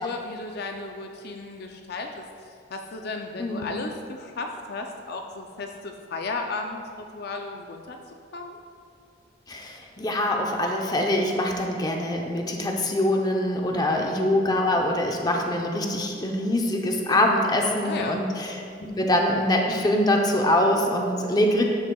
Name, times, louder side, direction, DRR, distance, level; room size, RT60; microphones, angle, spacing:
voice 1, 0.0-8.0 8.3-8.6 13.8-14.1 17.8-18.2, left 3 dB, 55° left, 3 dB, 0.5 m, -35 dB
voice 2, 9.5-18.6 18.9-21.6, left 1 dB, 20° left, 1 dB, 0.7 m, -24 dB
12.5 x 6.3 x 2.3 m, 2.5 s
head